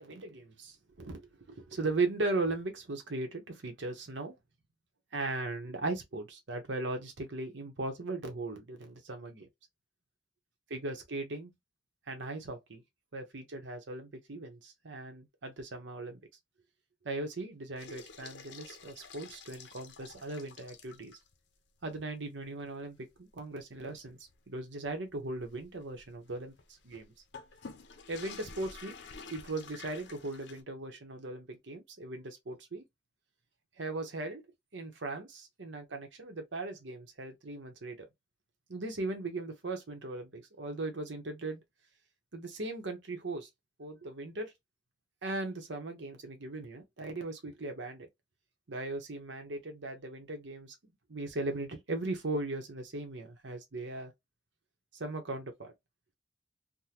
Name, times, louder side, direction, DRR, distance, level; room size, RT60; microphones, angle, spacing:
voice 1, 0.0-4.3 5.1-9.5 10.7-11.5 12.1-12.8 13.1-16.2 17.0-21.2 21.8-24.2 24.5-26.5 26.8-27.1 28.1-28.9 29.3-32.8 33.8-34.4 34.7-38.1 38.7-41.6 42.3-43.5 43.8-44.5 45.2-48.1 48.7-50.7 51.1-54.1 55.0-55.7, right 2 dB, 85° right, 0.9 m, -38 dB
sound 1, 17.8-21.3 21.8-21.9 22.3-22.4 23.0-30.6, left 5 dB, 75° left, 0.6 m, -50 dB
3.6 x 2.2 x 2.8 m
head